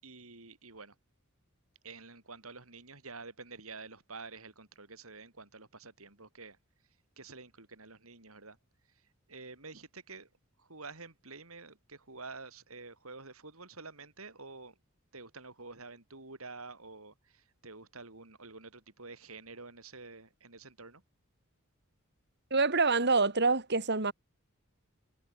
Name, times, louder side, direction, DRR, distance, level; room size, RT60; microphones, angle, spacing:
voice 1, 0.0-1.0 1.8-6.6 7.2-8.6 9.3-10.3 10.6-14.8 15.1-21.0, right 3 dB, 80° right, 5.4 m, -49 dB
voice 2, 22.5-24.1, right 4 dB, 55° right, 4.1 m, -26 dB
head